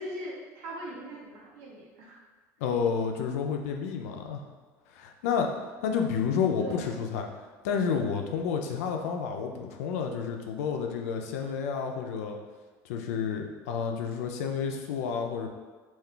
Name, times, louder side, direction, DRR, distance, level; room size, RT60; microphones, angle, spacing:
voice 1, 0.0-2.2 6.5-6.9, equal, 80° right, -4 dB, 0.8 m, -40 dB
voice 2, 2.6-4.4 4.9-5.5 5.8-7.3 7.6-12.4 12.8-15.5, left 6 dB, 85° left, 3 dB, 0.4 m, -30 dB
2.4 x 2.3 x 3.6 m, 1.4 s
supercardioid pair, 90°, 8 cm